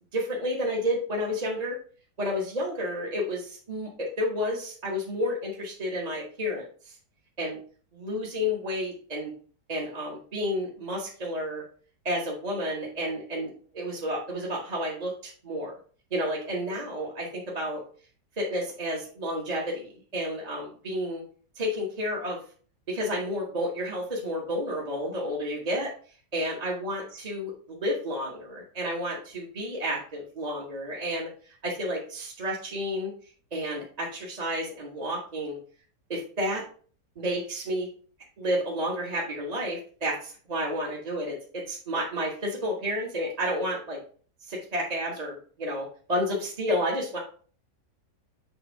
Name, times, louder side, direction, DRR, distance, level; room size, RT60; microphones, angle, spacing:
voice 1, 0.1-1.8 2.2-6.9 7.4-7.6 7.9-9.3 9.7-11.6 12.0-15.7 16.1-17.8 18.4-21.2 21.5-22.4 22.9-25.9 26.3-31.3 31.6-33.1 33.5-35.6 36.1-36.6 37.2-37.9 38.4-44.0 44.4-47.2, equal, 25° right, -3 dB, 1.1 m, -31 dB
7.1 x 3.2 x 4.5 m, 0.42 s
omnidirectional pair, 1.8 m